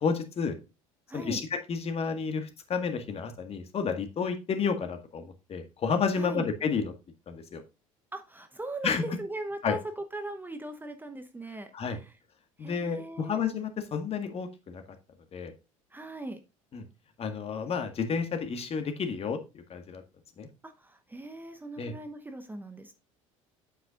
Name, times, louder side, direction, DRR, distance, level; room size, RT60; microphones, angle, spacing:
voice 1, 0.0-0.6 1.1-6.9 7.3-7.6 8.8-9.0 9.6-9.8 11.7-12.0 12.6-14.8 15.3-15.5 16.7-16.8 17.2-19.4 19.7-20.0 20.4-20.5 21.8-21.9, left 5 dB, 35° left, 7 dB, 1.8 m, -31 dB
voice 2, 1.1-1.4 6.1-6.5 8.1-12.2 12.6-13.4 15.9-16.4 20.6-22.9, right 2 dB, 10° right, 8 dB, 1.0 m, -39 dB
8.9 x 8.0 x 2.5 m, 0.28 s
figure-of-eight pair, 65°, 18 cm